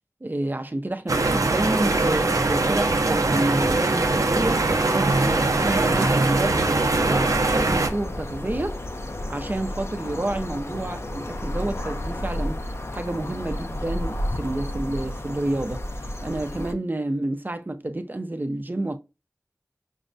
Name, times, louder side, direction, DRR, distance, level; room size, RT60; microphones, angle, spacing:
voice 1, 0.2-8.8 9.3-12.6 12.9-15.8 16.2-19.0, right 1 dB, 35° right, 0.5 m, -29 dB
sound 1, 1.1-7.9, right 2 dB, 85° right, 0.5 m, -22 dB
sound 2, 5.1-16.7, left 1 dB, 50° left, 0.5 m, -32 dB
6.1 x 2.1 x 2.5 m
wide cardioid pair, 45°, 6 cm